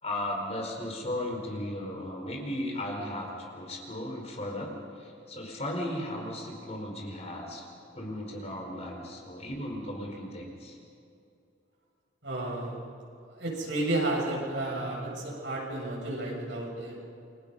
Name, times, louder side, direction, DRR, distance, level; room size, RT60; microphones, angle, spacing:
voice 1, 0.0-7.7 7.9-10.8, left 1 dB, 35° left, 1 dB, 4.7 m, -36 dB
voice 2, 12.2-12.8 13.4-17.0, right 2 dB, 70° right, -2 dB, 7.8 m, -32 dB
29.5 x 23.5 x 5.5 m, 2.5 s
head